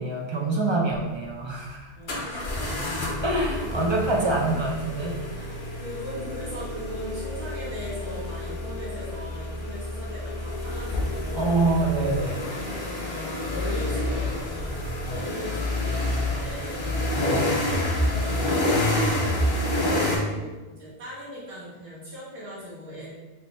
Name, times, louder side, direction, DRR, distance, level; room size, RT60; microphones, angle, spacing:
voice 1, 0.0-1.9 3.2-5.2 11.3-12.4 17.2-17.5, right 2 dB, 40° right, -2 dB, 0.4 m, -25 dB
sound 1, 0.9-1.0 2.1-20.2, left 1 dB, 75° left, 1.0 m, -28 dB
voice 2, 2.0-2.9 4.2-4.6 5.3-11.6 12.5-17.0 18.0-23.1, equal, 80° right, -9 dB, 1.4 m, -39 dB
3.2 x 2.7 x 3.1 m, 1.2 s
omnidirectional pair, 1.0 m